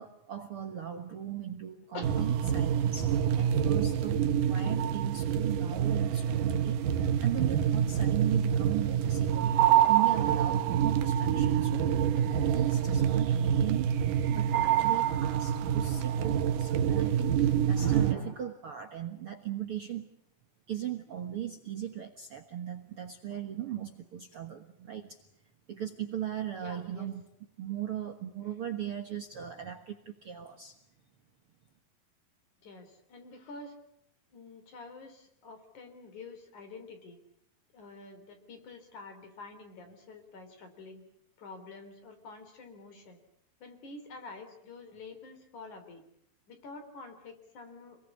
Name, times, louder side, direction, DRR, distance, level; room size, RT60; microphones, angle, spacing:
voice 1, 0.0-4.2 4.5-6.8 7.2-14.0 14.3-20.1 20.7-25.2 25.7-27.3 27.6-30.8, right 10 dB, 55° right, 5 dB, 1.8 m, -38 dB
voice 2, 1.9-2.3 2.8-2.9 26.5-27.1 32.6-33.8 34.3-37.2 37.7-41.0 41.4-43.2 43.6-46.0 46.5-48.0, left 3 dB, 55° left, 6 dB, 5.1 m, -47 dB
sound 1, 2.0-18.1, right 9 dB, 70° right, 2.6 m, -26 dB
28.0 x 21.5 x 8.5 m, 0.74 s
omnidirectional pair, 4.2 m